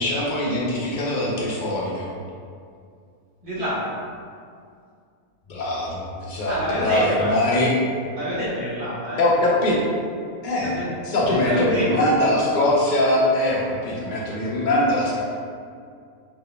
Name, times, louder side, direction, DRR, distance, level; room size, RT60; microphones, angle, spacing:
voice 1, 0.0-2.1 5.5-6.6 6.8-7.7 9.2-9.8 10.4-10.7 11.0-15.2, left 1 dB, 40° left, -5 dB, 0.7 m, -22 dB
voice 2, 3.4-3.9 6.5-7.3 8.2-9.2 10.6-10.9 11.2-12.0, equal, 40° right, -9 dB, 1.2 m, -27 dB
4.1 x 3.9 x 2.3 m, 2.2 s
omnidirectional pair, 1.6 m